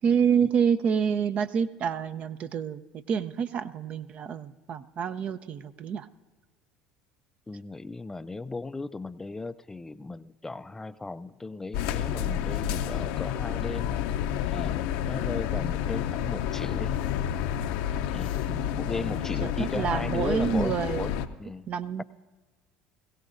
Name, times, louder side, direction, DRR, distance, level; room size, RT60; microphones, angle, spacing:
voice 1, 0.0-2.8 3.1-6.1 18.5-21.1 21.7-22.0, right 7 dB, 50° right, 12 dB, 0.7 m, -28 dB
voice 2, 7.5-14.0 14.5-16.9 18.1-18.4 18.8-21.1 21.4-21.7 22.0-22.1, left 3 dB, 15° left, 14 dB, 0.4 m, -36 dB
sound 1, 11.7-21.3, left 10 dB, 70° left, 0.6 m, -30 dB
22.0 x 16.5 x 2.6 m, 1.3 s
hypercardioid pair, 70°, 3 cm